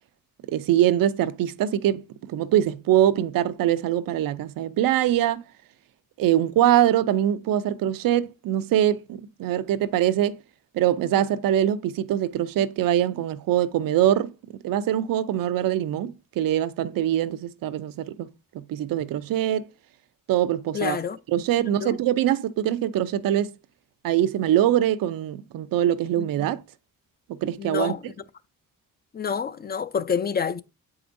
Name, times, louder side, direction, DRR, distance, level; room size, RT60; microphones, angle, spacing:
voice 1, 0.5-5.4 6.2-10.4 10.7-14.3 14.6-18.3 18.5-19.6 20.3-21.0 21.3-23.5 24.0-26.6 27.4-27.9, right 11 dB, 90° right, 0.5 m, -23 dB
voice 2, 20.7-21.2 21.7-22.0 26.2-26.3 27.6-28.0 29.1-30.6, left 6 dB, 30° left, 0.4 m, -28 dB
7.7 x 4.8 x 2.6 m
cardioid pair, 120°, 33 cm